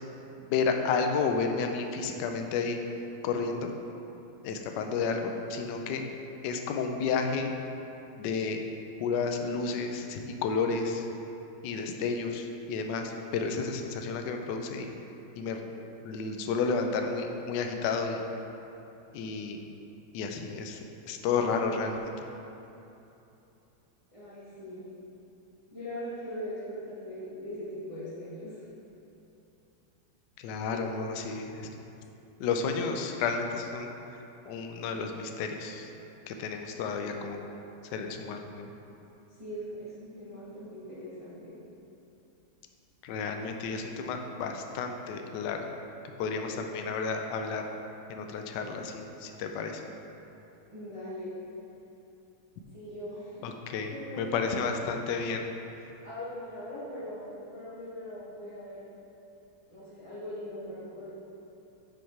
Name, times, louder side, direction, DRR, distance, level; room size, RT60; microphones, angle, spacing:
voice 1, 0.5-2.8 3.2-3.7 4.4-6.0 6.4-7.5 8.2-8.6 9.0-11.1 11.6-14.9 15.4-15.6 16.0-18.2 19.1-19.6 20.1-20.8 21.1-22.1 30.4-31.7 32.4-33.9 34.5-35.9 36.3-37.4 37.9-38.7 43.0-45.6 46.2-47.7 48.1-49.8 53.4-55.5, left 5 dB, 75° left, 4 dB, 1.0 m, -31 dB
voice 2, 24.1-24.9 25.7-28.7 30.7-31.1 39.4-41.6 50.7-51.3 52.7-53.5 53.8-54.8 56.0-58.9 59.7-61.1, equal, 20° right, -11 dB, 1.0 m, -41 dB
5.5 x 5.1 x 4.5 m, 2.9 s
omnidirectional pair, 2.3 m